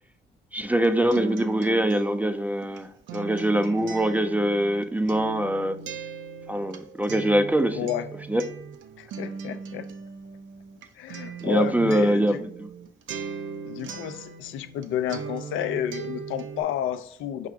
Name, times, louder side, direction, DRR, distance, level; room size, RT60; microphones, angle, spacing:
voice 1, 0.5-5.8 6.5-7.9 8.3-8.4 11.4-12.7, right 1 dB, 10° right, 0.3 m, -23 dB
Acoustic guitar, 0.6-14.8 15.1-16.6, right 6 dB, 75° right, 0.5 m, -39 dB
voice 2, 7.8-8.1 9.0-9.9 11.0-12.4 13.6-17.5, left 10 dB, 85° left, 0.4 m, -31 dB
5.7 x 2.4 x 3.5 m
cardioid pair, 90°, 20 cm